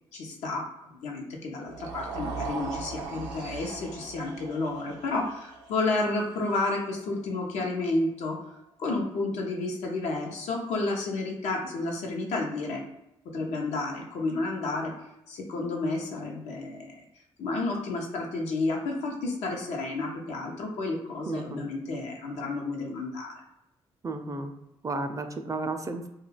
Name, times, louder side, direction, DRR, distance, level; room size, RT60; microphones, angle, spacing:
voice 1, 0.1-12.8 13.3-14.9 15.3-17.0 17.4-23.4, left 2 dB, 85° left, 0 dB, 0.7 m, -31 dB
sound 1, 1.6-7.9, right 4 dB, 90° right, 0.5 m, -40 dB
voice 2, 21.3-21.7 24.0-24.5 24.8-26.1, right 2 dB, 30° right, 7 dB, 0.4 m, -33 dB
2.3 x 2.3 x 3.2 m, 0.86 s
supercardioid pair, 55°, 11 cm